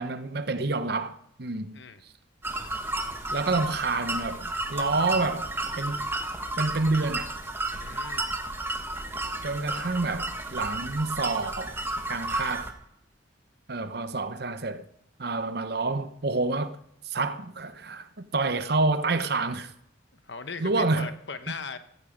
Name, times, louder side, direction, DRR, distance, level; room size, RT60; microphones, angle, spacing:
voice 1, 0.0-1.8 3.3-5.5 5.8-6.1 6.6-7.3 9.4-11.8 12.1-12.7 13.7-14.8 15.2-16.8 17.0-19.7 20.6-21.1, right 3 dB, 55° right, 0.8 m, -28 dB
sound 1, 2.4-12.7, right 2 dB, 10° right, 1.3 m, -32 dB
voice 2, 7.8-8.3 20.1-21.8, left 5 dB, 65° left, 1.1 m, -38 dB
15.0 x 14.5 x 5.1 m
head